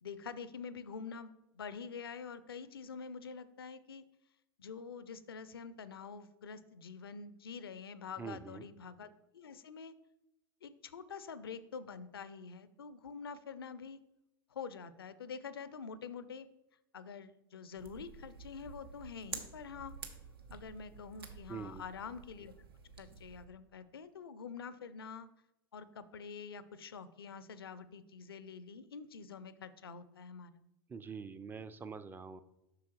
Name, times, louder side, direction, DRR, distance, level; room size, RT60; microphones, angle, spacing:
voice 1, 0.0-4.0 4.6-9.1 9.3-9.9 10.6-14.0 14.5-16.5 16.9-19.9 20.5-22.5 23.0-25.3 25.7-30.6, left 6 dB, 80° left, 15 dB, 0.4 m, -46 dB
voice 2, 8.2-8.7 21.5-21.8 30.9-32.4, right 5 dB, 15° right, 12 dB, 0.4 m, -45 dB
sound 1, 17.8-23.5, right 5 dB, 75° right, 0.8 m, -50 dB
7.6 x 5.9 x 3.0 m, 0.89 s
figure-of-eight pair, 85°, 12 cm